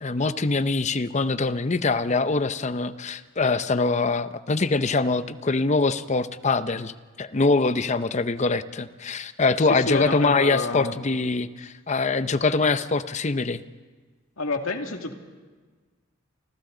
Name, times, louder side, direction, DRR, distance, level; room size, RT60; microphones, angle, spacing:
voice 1, 0.0-6.9 7.2-13.6, left 3 dB, 35° left, 13 dB, 0.6 m, -24 dB
voice 2, 9.6-10.9 14.4-15.1, left 3 dB, 80° left, 4 dB, 2.1 m, -28 dB
30.0 x 25.5 x 3.9 m, 1.4 s
head